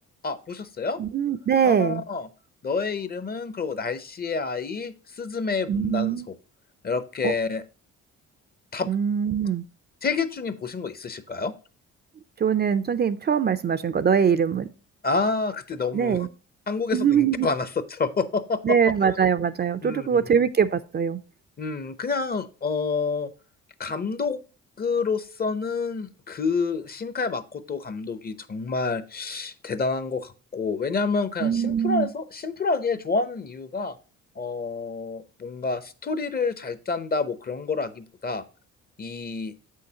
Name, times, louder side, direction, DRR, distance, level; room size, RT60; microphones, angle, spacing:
voice 1, 0.2-1.0 1.6-2.3 2.6-6.2 6.8-7.6 8.7-8.9 10.0-11.5 15.0-16.2 16.7-18.8 19.8-20.2 21.6-23.3 23.8-24.4 24.8-34.0 34.4-38.4 39.0-39.5, left 4 dB, 30° left, 0.7 m, -28 dB
voice 2, 1.0-2.0 5.7-6.3 7.2-7.3 8.9-9.6 12.4-14.7 15.9-16.3 16.9-17.5 18.6-21.2 31.4-32.1, right 7 dB, 35° right, 0.4 m, -22 dB
7.7 x 6.4 x 2.8 m
cardioid pair, 90°, 30 cm